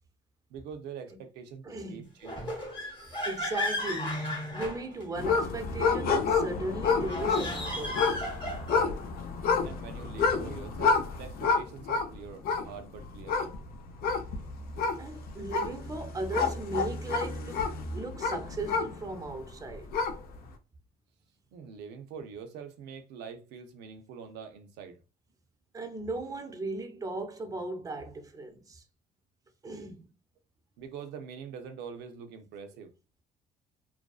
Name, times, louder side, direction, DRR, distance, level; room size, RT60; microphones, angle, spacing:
voice 1, 0.5-2.3 9.6-13.6 21.5-25.0 27.1-27.2 30.8-32.9, right 6 dB, 90° right, 0.5 m, -44 dB
voice 2, 1.6-2.1 3.2-8.0 15.0-20.0 25.7-28.8 29.6-30.0, right 2 dB, 20° right, 0.5 m, -37 dB
sound 1, 2.2-5.4 7.0-9.0, left 1 dB, 30° left, 0.9 m, -35 dB
sound 2, 5.2-19.3 19.7-20.4, left 4 dB, 60° left, 0.4 m, -29 dB
2.5 x 2.2 x 2.3 m
cardioid pair, 110°, 17 cm